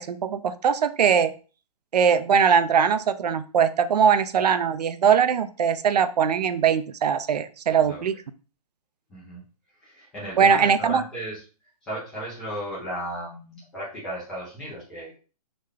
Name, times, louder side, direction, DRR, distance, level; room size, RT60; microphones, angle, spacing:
voice 1, 0.0-1.3 1.9-8.1 10.4-11.0, right 7 dB, 85° right, 12 dB, 0.4 m, -21 dB
voice 2, 7.7-8.0 9.1-9.4 9.8-11.4 11.8-15.2, equal, 5° left, -9 dB, 0.3 m, -35 dB
3.7 x 2.1 x 3.2 m, 0.36 s
hypercardioid pair, 165°, 20 cm